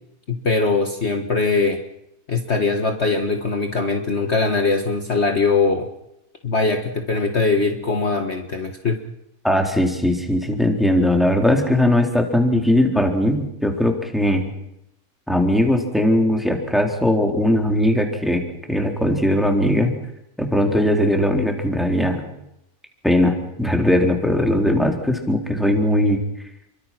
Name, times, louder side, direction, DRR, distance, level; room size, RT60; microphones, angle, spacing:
voice 1, 0.3-1.8 2.3-5.9 6.4-9.0, left 4 dB, 45° left, 5 dB, 1.8 m, -21 dB
voice 2, 9.4-14.5 15.3-18.4 18.7-19.9 20.4-22.2 23.0-26.2, left 1 dB, ahead, 3 dB, 3.7 m, -19 dB
29.5 x 23.0 x 6.1 m, 0.82 s
omnidirectional pair, 1.6 m